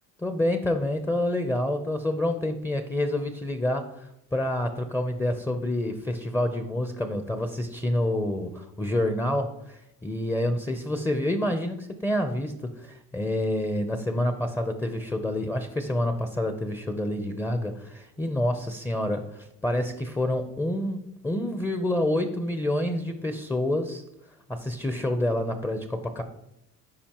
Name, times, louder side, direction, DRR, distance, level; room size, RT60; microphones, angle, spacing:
voice 1, 0.2-24.0 24.5-26.2, left 1 dB, 10° left, 7 dB, 0.6 m, -28 dB
13.5 x 5.0 x 3.0 m, 0.83 s
cardioid pair, 105°, 35 cm